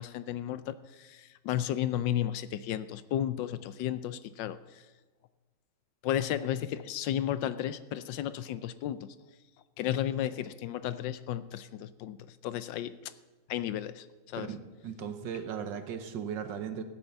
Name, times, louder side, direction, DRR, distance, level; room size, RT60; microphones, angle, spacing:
voice 1, 0.0-4.8 6.0-9.0 9.8-12.2 12.4-13.1 13.5-14.5, left 11 dB, 75° left, 15 dB, 1.1 m, -33 dB
voice 2, 14.4-16.8, right 8 dB, 65° right, 9 dB, 1.5 m, -37 dB
15.5 x 8.8 x 7.0 m, 1.3 s
omnidirectional pair, 2.3 m